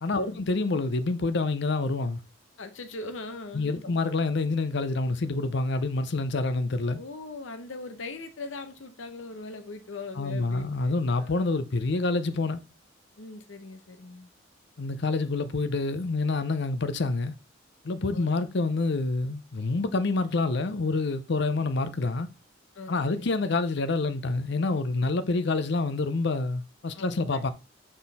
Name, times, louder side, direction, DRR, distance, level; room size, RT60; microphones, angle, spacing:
voice 1, 0.0-2.2 3.5-7.0 10.2-12.6 14.8-17.3 17.8-22.3 22.9-27.5, left 3 dB, 60° left, 0.6 m, -27 dB
voice 2, 2.6-4.0 7.0-10.9 11.2-11.3 13.2-14.3 18.1-18.3 22.7-23.3 25.3-25.4 26.9-27.4, left 3 dB, 80° left, 0.9 m, -40 dB
6.4 x 3.8 x 4.1 m
head